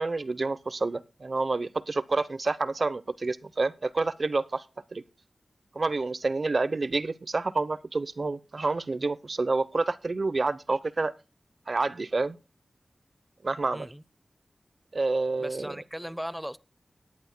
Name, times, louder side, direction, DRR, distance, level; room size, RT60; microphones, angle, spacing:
voice 1, 0.0-4.6 4.9-5.0 5.7-11.1 11.7-12.4 13.4-13.9 14.9-15.8, right 3 dB, 55° right, 0.8 m, -28 dB
voice 2, 13.7-14.0 15.4-16.6, equal, ahead, 0.7 m, -37 dB
18.5 x 10.5 x 2.2 m
wide cardioid pair, 90°, 0 cm